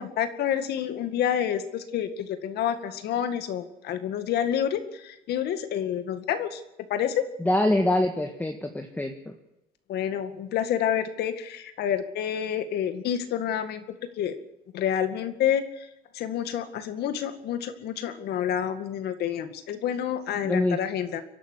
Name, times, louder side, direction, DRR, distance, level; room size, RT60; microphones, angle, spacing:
voice 1, 0.0-6.6 6.9-7.2 9.9-13.8 14.2-14.3 14.7-15.9 16.1-21.2, left 9 dB, 75° left, 10 dB, 2.1 m, -28 dB
voice 2, 7.4-9.1 20.4-20.8, left 1 dB, 10° left, 4 dB, 1.7 m, -24 dB
23.5 x 11.5 x 9.9 m, 0.89 s
cardioid pair, 110°, 17 cm